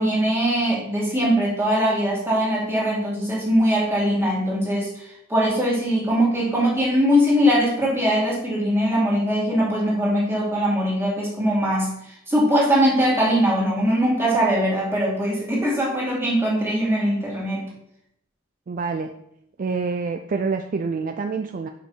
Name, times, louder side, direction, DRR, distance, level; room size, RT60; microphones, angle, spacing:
voice 1, 0.0-11.9 12.3-17.7, equal, 10° right, -5 dB, 2.3 m, -21 dB
voice 2, 18.7-19.1 19.6-21.7, right 4 dB, 40° right, 6 dB, 0.4 m, -26 dB
5.6 x 5.1 x 5.5 m, 0.76 s
head